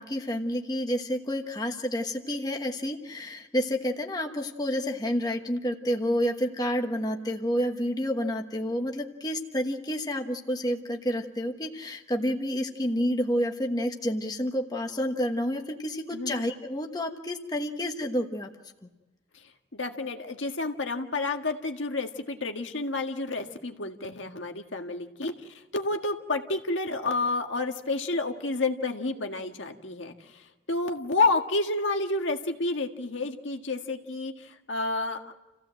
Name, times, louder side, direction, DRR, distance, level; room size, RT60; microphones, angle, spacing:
voice 1, 0.0-18.5, equal, 20° left, 3 dB, 1.3 m, -29 dB
voice 2, 16.1-16.5 19.7-25.3 25.7-30.4 30.7-35.3, left 3 dB, 80° left, 4 dB, 1.7 m, -30 dB
28.5 x 16.0 x 7.7 m, 1.1 s
head